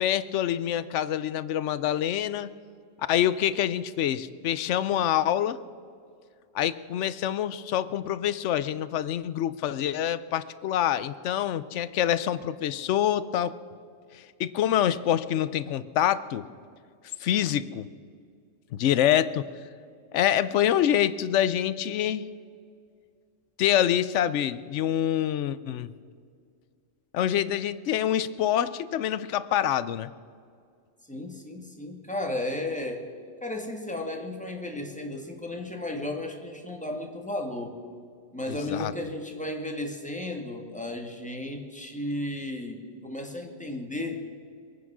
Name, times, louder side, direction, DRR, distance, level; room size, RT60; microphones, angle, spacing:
voice 1, 0.0-2.5 3.1-5.6 6.5-13.5 14.1-16.4 17.2-17.9 18.7-19.5 20.1-22.2 23.6-25.9 27.1-30.1 38.5-38.9, left 11 dB, 70° left, 15 dB, 0.9 m, -26 dB
voice 2, 31.1-33.1 33.4-37.8 38.3-44.2, left 1 dB, 5° left, 2 dB, 1.7 m, -34 dB
23.0 x 9.5 x 6.1 m, 2.2 s
omnidirectional pair, 1.4 m